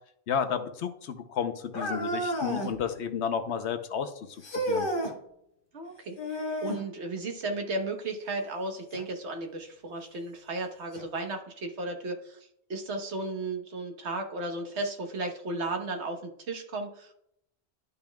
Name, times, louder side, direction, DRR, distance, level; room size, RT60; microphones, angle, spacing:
voice 1, 0.3-4.3 4.5-4.9, left 7 dB, 85° left, 8 dB, 1.0 m, -32 dB
sound 1, 1.7-2.8 4.4-5.2 6.2-6.9 8.9-9.0 9.9-10.0 10.9-11.0, equal, 55° left, 1.4 m, -31 dB
voice 2, 5.7-6.2 6.6-17.1, right 2 dB, 90° right, 4 dB, 1.4 m, -34 dB
12.0 x 5.4 x 2.3 m, 0.72 s
omnidirectional pair, 1.1 m